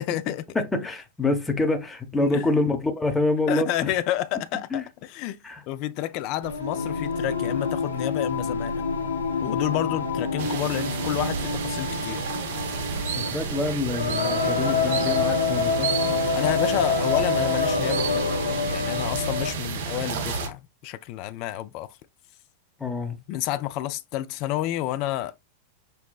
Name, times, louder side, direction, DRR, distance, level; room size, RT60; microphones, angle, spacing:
voice 1, 0.0-0.4 2.1-2.5 3.5-8.8 9.4-12.2 16.3-21.9 23.3-25.4, left 14 dB, 45° left, 0.3 m, -30 dB
voice 2, 0.5-3.9 4.7-4.8 5.4-5.6 13.2-15.9 22.8-23.2, left 2 dB, 10° left, 0.7 m, -26 dB
Singing, 6.4-19.6, left 4 dB, 75° left, 0.6 m, -27 dB
sound 1, 10.4-20.5, right 5 dB, 55° right, 0.7 m, -31 dB
5.5 x 2.1 x 2.3 m
figure-of-eight pair, 90°, 0 cm